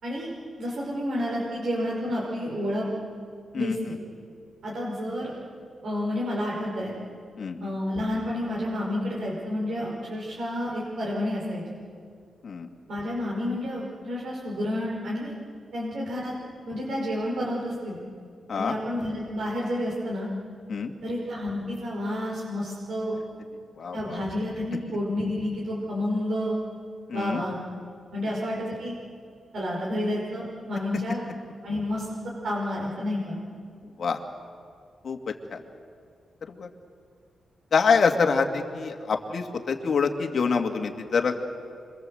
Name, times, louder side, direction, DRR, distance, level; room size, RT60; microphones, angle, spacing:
voice 1, 0.6-2.9 3.5-4.0 4.6-5.3 5.8-6.9 7.6-11.6 12.9-15.3 15.7-16.3 16.7-18.0 18.6-20.3 21.0-23.2 23.9-26.6 27.1-27.6 28.1-28.9 29.5-31.2 31.6-32.1 32.4-33.4, left 1 dB, 65° right, -4 dB, 5.4 m, -30 dB
voice 2, 3.5-4.0 7.4-7.8 12.4-12.7 18.5-18.8 20.7-20.9 23.8-24.2 27.1-27.5 34.0-34.2 35.0-35.6 36.5-36.7 37.7-41.4, left 5 dB, 50° left, 4 dB, 2.1 m, -26 dB
26.5 x 23.5 x 7.8 m, 2.2 s
wide cardioid pair, 135°, 0 cm